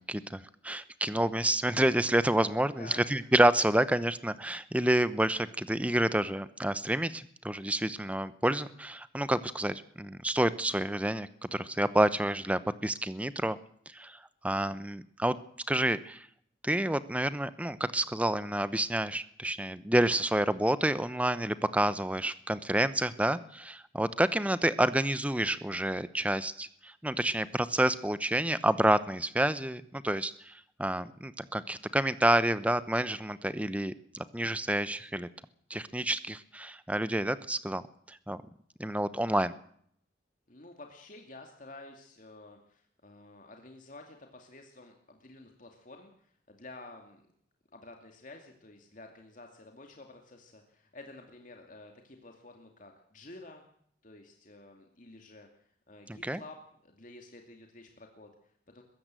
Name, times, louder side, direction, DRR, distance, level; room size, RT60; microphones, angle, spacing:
voice 1, 0.0-13.6 13.9-14.2 14.4-15.4 15.7-16.3 16.6-30.5 30.8-35.3 35.7-37.8 38.1-38.4 38.8-39.5 56.2-56.4, right 1 dB, 5° right, 15 dB, 0.9 m, -29 dB
voice 2, 2.6-3.3 40.5-47.3 47.7-53.6 54.0-58.8, left 2 dB, 45° left, 3 dB, 2.5 m, -51 dB
22.0 x 16.0 x 7.7 m, 0.65 s
head